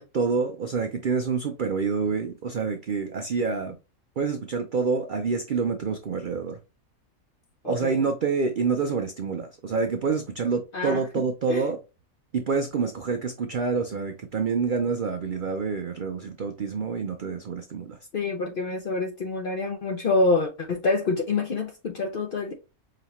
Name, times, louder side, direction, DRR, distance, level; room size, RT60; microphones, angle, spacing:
voice 1, 0.0-3.8 4.2-6.6 7.6-11.8 12.3-18.0, right 5 dB, 75° right, 0.4 m, -27 dB
voice 2, 7.6-8.1 10.7-11.2 11.5-11.7 18.1-22.5, left 3 dB, 55° left, 0.6 m, -27 dB
5.1 x 2.8 x 2.9 m
omnidirectional pair, 1.5 m